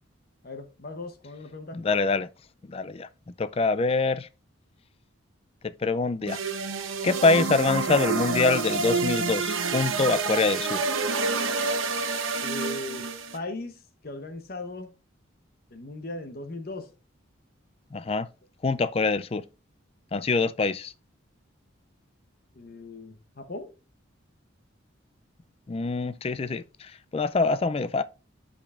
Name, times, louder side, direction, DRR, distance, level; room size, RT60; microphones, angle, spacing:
voice 1, 0.4-1.8 12.4-14.9 15.7-16.9 22.5-23.7, left 2 dB, 45° left, 0.9 m, -38 dB
voice 2, 1.7-2.3 2.7-3.1 3.4-4.3 5.6-6.4 7.0-10.8 17.9-18.3 18.6-19.4 20.1-20.9 25.7-28.0, left 3 dB, 30° left, 0.3 m, -25 dB
sound 1, 6.3-13.4, right 4 dB, 75° right, 1.0 m, -28 dB
11.5 x 5.1 x 2.5 m
head